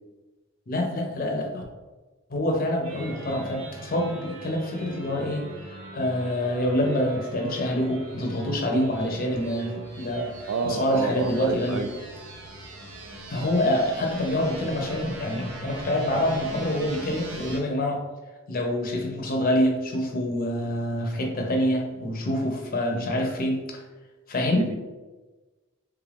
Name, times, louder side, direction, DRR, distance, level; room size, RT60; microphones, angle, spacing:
voice 1, 0.7-1.6 2.3-5.4 5.9-10.3 10.6-11.8 13.3-18.0 18.5-23.8 24.3-24.6, left 1 dB, 45° left, 2 dB, 0.6 m, -26 dB
sound 1, 2.8-17.6, right 1 dB, 70° right, 0.7 m, -40 dB
voice 2, 10.5-11.9 22.0-22.1 24.6-24.8, right 4 dB, 90° right, 7 dB, 0.3 m, -29 dB
3.3 x 2.4 x 3.3 m, 1.2 s
head